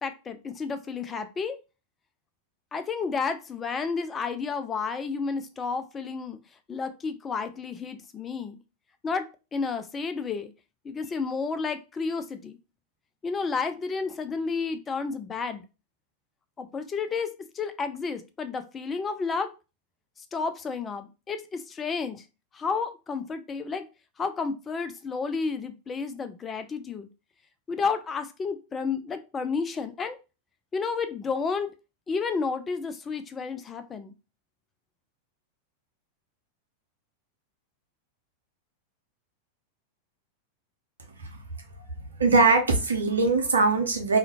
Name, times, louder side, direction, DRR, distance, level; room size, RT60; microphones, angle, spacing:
voice 1, 0.0-1.6 2.7-6.4 6.7-8.6 9.0-10.5 10.8-12.6 13.2-15.6 16.6-17.3 17.5-19.5 20.3-22.2 22.5-23.9 24.2-27.1 27.7-30.2 30.7-31.7 32.1-34.1, left 5 dB, 20° left, 10 dB, 0.3 m, -31 dB
voice 2, 42.2-44.2, right 3 dB, 70° right, 3 dB, 0.6 m, -21 dB
2.4 x 2.1 x 2.8 m, 0.30 s
figure-of-eight pair, 90°, 0 cm